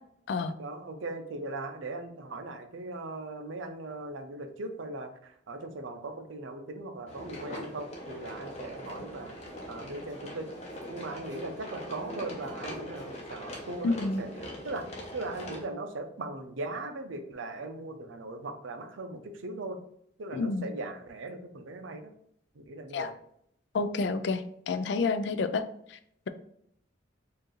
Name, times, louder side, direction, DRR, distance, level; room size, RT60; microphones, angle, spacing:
voice 1, 0.6-9.4 9.7-10.5 10.9-14.3 14.6-19.8 20.2-22.1 22.5-23.1, right 2 dB, 85° right, 7 dB, 0.6 m, -39 dB
sound 1, 7.1-15.7, equal, 35° left, 0.8 m, -42 dB
voice 2, 13.8-14.2 20.3-20.7 22.9-23.1 23.7-25.6 25.9-26.0, left 3 dB, 65° left, 10 dB, 0.4 m, -29 dB
4.5 x 2.5 x 3.1 m, 0.70 s
head